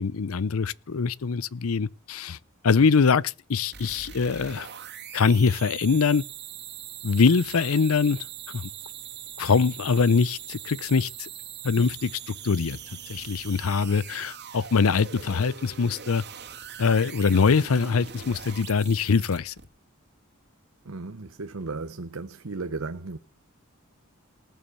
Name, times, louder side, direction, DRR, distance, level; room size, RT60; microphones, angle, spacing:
voice 1, 0.0-2.4 2.6-4.7 5.1-6.2 7.0-8.7 9.4-11.3 11.6-12.8 13.1-16.2 16.8-19.5, left 5 dB, 75° left, 0.6 m, -23 dB
sound 1, 3.7-19.6, right 9 dB, 50° right, 2.3 m, -41 dB
voice 2, 20.8-23.2, right 3 dB, 70° right, 0.9 m, -35 dB
19.5 x 7.2 x 6.9 m
head